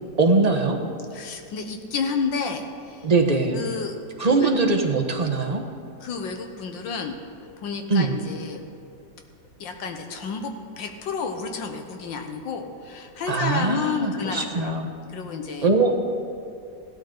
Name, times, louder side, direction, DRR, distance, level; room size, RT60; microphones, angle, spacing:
voice 1, 0.2-0.8 3.0-3.6 4.2-5.6 7.9-8.1 13.3-14.9 15.6-15.9, right 3 dB, 30° right, 3 dB, 0.8 m, -21 dB
voice 2, 1.1-3.1 3.5-4.5 6.0-7.2 7.6-8.6 9.6-14.7 15.1-15.7, left 5 dB, 85° left, 5 dB, 1.8 m, -31 dB
16.0 x 12.5 x 3.9 m, 2.5 s
omnidirectional pair, 2.0 m